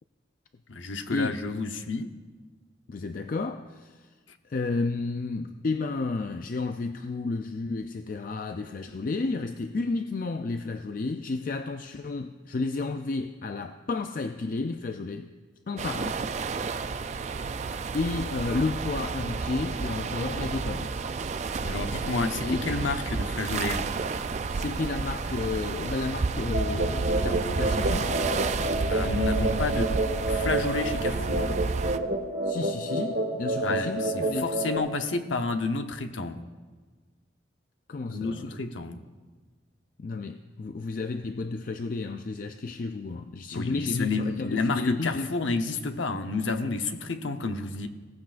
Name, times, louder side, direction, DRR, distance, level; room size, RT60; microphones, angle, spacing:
voice 1, 0.7-2.1 21.6-23.9 28.9-30.0 30.3-31.6 33.6-36.4 38.1-39.0 43.5-47.9, left 3 dB, 85° left, 6 dB, 0.8 m, -30 dB
voice 2, 2.9-4.1 4.4-15.3 15.7-16.2 17.9-20.9 21.6-21.9 22.2-22.7 24.5-28.1 32.4-34.5 37.9-38.6 40.0-45.3, left 3 dB, 45° left, 7 dB, 0.4 m, -32 dB
sound 1, 15.8-32.0, right 4 dB, 35° right, 0.3 m, -31 dB
sound 2, 26.5-34.8, right 2 dB, 65° right, 1.6 m, -29 dB
18.0 x 14.5 x 2.5 m, 1.4 s
head